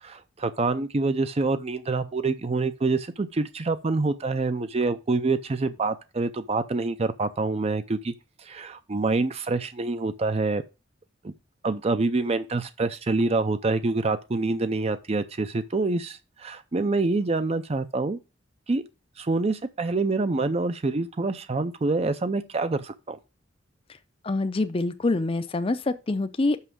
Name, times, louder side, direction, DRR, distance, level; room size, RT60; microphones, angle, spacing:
voice 1, 0.0-8.1 8.4-10.6 11.2-11.3 11.6-18.2 18.7-18.8 19.2-23.2, right 3 dB, 35° right, 0.5 m, -26 dB
voice 2, 24.2-26.6, left 2 dB, 30° left, 0.5 m, -25 dB
6.0 x 5.6 x 6.2 m
head